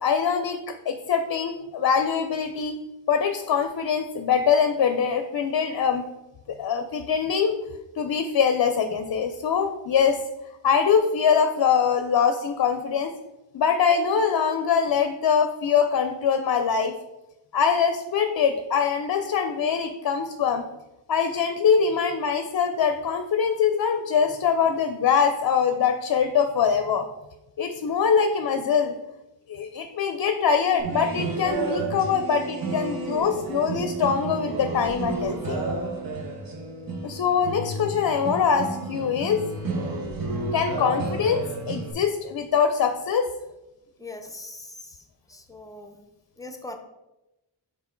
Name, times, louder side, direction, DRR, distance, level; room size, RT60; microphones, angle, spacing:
voice 1, 0.0-2.8 3.1-6.0 6.5-7.5 8.0-10.2 10.6-13.1 13.5-16.9 17.5-20.6 21.1-27.1 27.6-29.0 29.5-35.6 37.0-39.4 40.5-43.3, left 6 dB, 60° left, 7 dB, 0.5 m, -23 dB
sound 1, 30.8-41.9, right 3 dB, 55° right, 1.1 m, -31 dB
voice 2, 44.0-45.0 45.3-46.0 46.4-46.8, left 2 dB, 10° left, 6 dB, 0.6 m, -40 dB
5.9 x 3.7 x 4.4 m, 0.98 s
wide cardioid pair, 120°, 44 cm